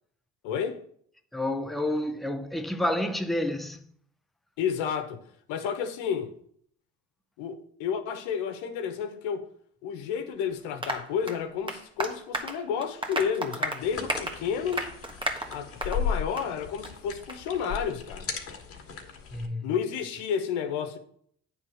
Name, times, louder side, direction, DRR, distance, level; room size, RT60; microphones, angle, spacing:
voice 1, 0.4-0.8 4.6-5.2 5.5-6.3 7.4-9.4 9.8-14.9 15.5-18.3 19.6-21.0, left 7 dB, 85° left, 1.1 m, -31 dB
voice 2, 1.3-3.9 19.3-19.7, left 1 dB, ahead, 0.8 m, -29 dB
Applause, 10.8-16.0 16.4-16.5 16.8-16.9 17.3-17.4, right 1 dB, 15° right, 1.4 m, -33 dB
sound 1, 13.8-19.5, left 6 dB, 50° left, 1.7 m, -36 dB
8.9 x 3.7 x 6.3 m
supercardioid pair, 85°, 29 cm